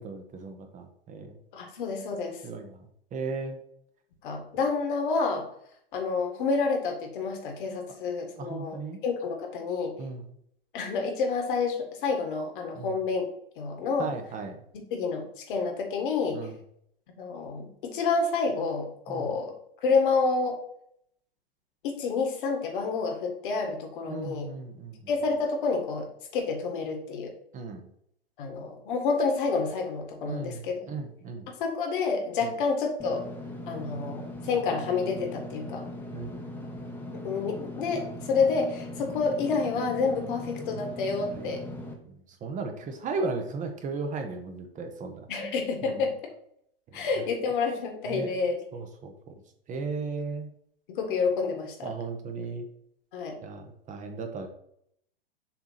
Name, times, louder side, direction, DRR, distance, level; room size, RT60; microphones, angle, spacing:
voice 1, 0.0-1.3 2.4-2.8 3.1-3.6 8.4-9.0 10.0-10.2 12.8-12.9 14.0-14.5 16.3-16.5 19.1-19.3 24.1-25.0 27.5-27.9 30.3-30.6 30.9-31.5 36.1-36.4 40.8-40.9 41.2-41.5 42.4-45.5 45.8-46.0 46.9-47.2 48.1-48.3 48.7-49.1 49.7-50.5 51.8-52.7 53.4-54.5, right 4 dB, 25° right, 5 dB, 1.2 m, -36 dB
voice 2, 1.5-2.4 4.2-5.5 5.9-10.0 10.7-13.3 13.6-14.1 14.9-16.4 17.2-19.5 19.8-20.6 21.8-24.5 25.1-27.3 28.4-30.8 31.6-33.3 33.7-35.9 37.1-41.6 45.3-46.1 46.9-48.6 50.9-51.9 53.1-53.4, left 4 dB, 55° left, 3 dB, 2.0 m, -29 dB
Engine / Mechanisms, 33.0-41.9, left 1 dB, 5° left, 1.2 m, -39 dB
7.0 x 3.7 x 5.8 m, 0.70 s
figure-of-eight pair, 100°, 30 cm